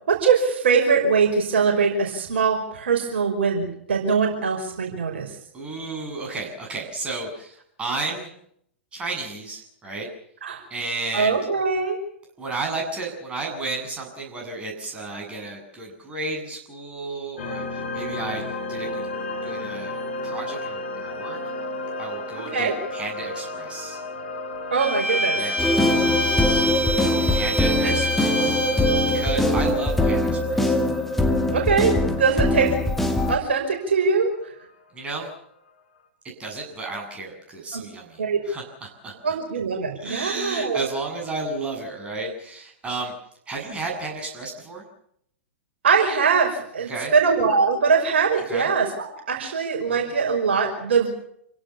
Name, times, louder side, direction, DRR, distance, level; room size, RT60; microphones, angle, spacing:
voice 1, 0.1-5.4 10.4-10.6 11.1-12.0 22.5-22.7 24.7-25.4 27.8-27.9 31.5-31.9 32.2-32.7 33.3-34.5 37.7-37.8 38.2-38.4 39.2-40.9 45.8-51.1, right 5 dB, 60° right, 2 dB, 5.5 m, -22 dB
voice 2, 5.5-8.3 8.9-10.1 10.7-11.4 12.4-18.4 18.7-19.1 19.4-19.9 20.2-21.4 22.0-24.0 25.3-25.6 27.1-28.6 29.0-30.8 34.9-35.3 36.4-39.4 40.0-43.1 43.5-44.9 46.9-47.1 48.5-48.7 49.9-50.1, right 3 dB, 15° right, 0 dB, 8.0 m, -32 dB
sound 1, 17.4-34.4, left 2 dB, 60° left, 4.6 m, -35 dB
Bowed string instrument, 24.8-29.4, equal, 80° right, 1.7 m, -26 dB
sound 2, 25.6-33.4, left 1 dB, 5° left, 2.3 m, -22 dB
27.5 x 17.0 x 7.2 m, 0.71 s
figure-of-eight pair, 105°, 7 cm